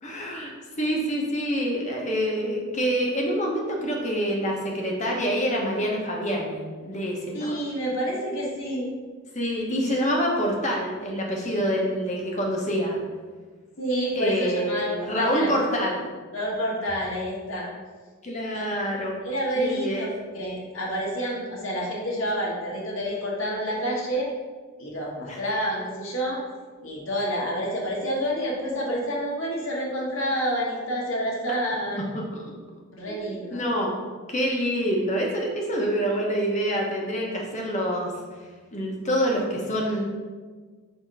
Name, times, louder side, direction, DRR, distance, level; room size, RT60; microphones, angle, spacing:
voice 1, 0.0-0.5 0.8-7.6 9.3-13.0 14.1-16.0 18.2-19.1 19.6-20.1 25.3-25.4 32.1-32.5 33.1-33.2 33.5-34.0 34.3-38.1 38.7-40.0, equal, 35° left, -1 dB, 1.0 m, -26 dB
voice 2, 7.3-8.9 13.8-15.5 16.3-17.7 18.5-18.8 19.2-24.3 24.8-26.4 26.8-32.0 32.9-33.6, equal, 65° left, -3 dB, 1.6 m, -28 dB
6.1 x 2.9 x 5.5 m, 1.4 s
head